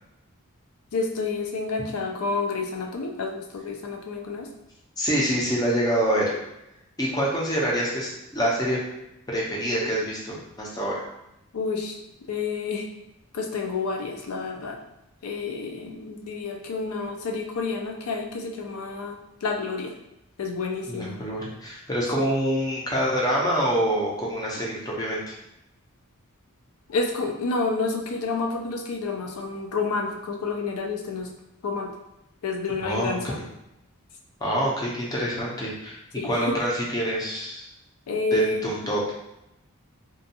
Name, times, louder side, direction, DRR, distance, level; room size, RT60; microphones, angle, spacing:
voice 1, 0.9-4.5 11.5-12.0 12.3-12.9 13.3-14.8 15.2-19.9 20.4-21.2 22.2-22.3 26.9-31.3 31.6-31.9 32.4-33.4 36.2-36.5 38.1-38.6, left 4 dB, 75° left, 2 dB, 0.4 m, -29 dB
voice 2, 5.0-6.4 7.0-8.8 9.3-11.0 20.9-25.3 32.8-33.4 34.4-36.0 36.2-37.7 38.3-39.0, equal, 15° left, -4 dB, 0.5 m, -26 dB
2.6 x 2.2 x 2.7 m, 0.87 s
head